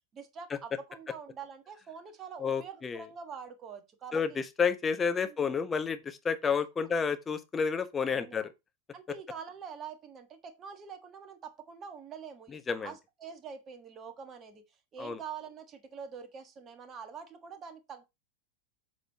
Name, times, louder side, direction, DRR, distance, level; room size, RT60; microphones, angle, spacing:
voice 1, 0.1-4.4 5.2-5.5 8.0-8.5 8.9-14.6 14.9-18.0, right 6 dB, 25° right, 1.4 m, -45 dB
voice 2, 2.4-3.0 4.1-8.5 12.5-12.9 15.0-15.2, left 6 dB, 20° left, 0.8 m, -30 dB
8.0 x 6.4 x 2.8 m
figure-of-eight pair, 90°, 0 cm